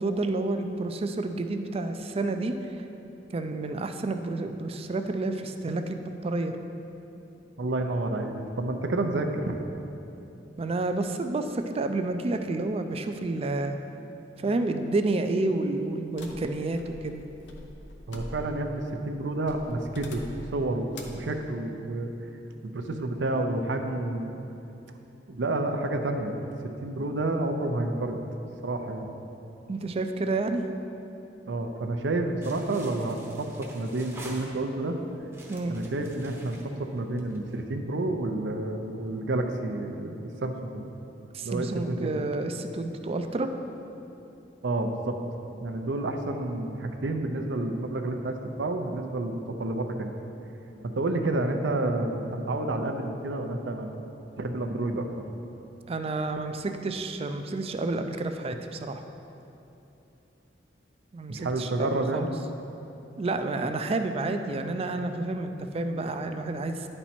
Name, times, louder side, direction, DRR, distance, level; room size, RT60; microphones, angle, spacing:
voice 1, 0.0-2.6 3.3-6.6 10.6-13.8 14.4-17.2 29.7-30.7 35.5-35.8 41.3-43.5 55.9-59.0 61.1-62.3 63.2-66.9, right 2 dB, 35° right, 7 dB, 0.4 m, -30 dB
voice 2, 7.6-9.6 18.1-22.1 22.6-24.4 25.3-28.2 28.6-29.1 31.5-35.0 35.7-40.8 41.4-42.2 44.6-45.2 45.6-50.1 50.8-54.0 54.4-55.3 61.3-62.3, right 2 dB, 80° right, 5 dB, 0.6 m, -30 dB
sound 1, 16.2-18.8 19.4-20.6 20.9-21.3, left 1 dB, 90° left, 0.7 m, -44 dB
sound 2, 32.4-34.9 35.3-37.5, right 1 dB, 15° right, 0.8 m, -47 dB
10.0 x 4.4 x 4.3 m, 2.9 s
head